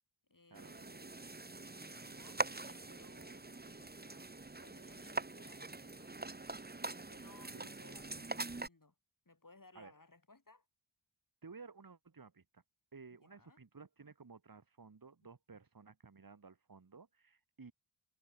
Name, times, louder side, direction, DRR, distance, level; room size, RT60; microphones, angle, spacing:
voice 1, 0.3-1.3 1.8-8.9 9.2-10.7 13.2-13.6, left 3 dB, 40° left, 8.0 m, -63 dB
sound 1, 0.5-8.7, right 3 dB, 20° right, 1.2 m, -43 dB
voice 2, 11.4-12.6 12.9-17.7, right 4 dB, 45° right, 2.2 m, -55 dB
wide cardioid pair, 65°, 49 cm